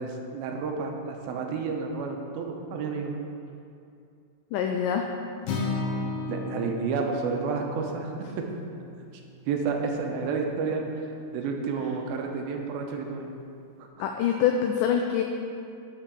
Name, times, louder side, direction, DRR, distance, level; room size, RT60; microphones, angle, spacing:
voice 1, 0.0-3.1 6.3-8.5 9.5-13.4, right 4 dB, 85° right, 2 dB, 2.6 m, -30 dB
voice 2, 4.5-5.0 14.0-15.2, left 8 dB, 85° left, 3 dB, 1.9 m, -25 dB
Acoustic guitar, 5.5-9.7, left 3 dB, 70° left, 2.0 m, -34 dB
12.0 x 4.5 x 5.1 m, 2.5 s
omnidirectional pair, 4.4 m